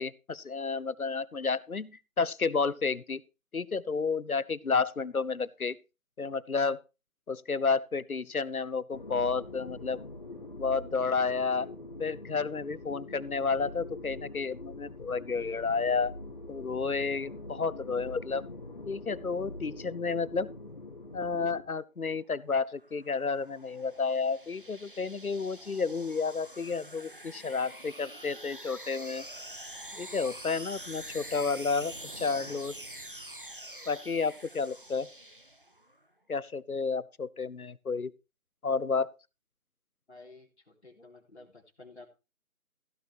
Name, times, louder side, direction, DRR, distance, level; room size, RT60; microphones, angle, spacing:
voice 1, 0.0-3.2 3.5-5.7 6.2-6.8 7.3-10.0 10.6-11.7 12.0-16.1 16.5-18.4 18.9-20.5 21.1-29.2 29.9-32.7 33.9-35.1 36.3-38.1 38.6-39.1, left 4 dB, 85° left, 1.0 m, -31 dB
sound 1, 8.9-21.6, left 2 dB, 35° left, 2.0 m, -44 dB
sound 2, 22.5-35.9, right 1 dB, 40° right, 0.8 m, -46 dB
voice 2, 40.1-42.1, left 2 dB, 50° left, 3.6 m, -52 dB
16.0 x 7.1 x 4.4 m
figure-of-eight pair, 170°, 42 cm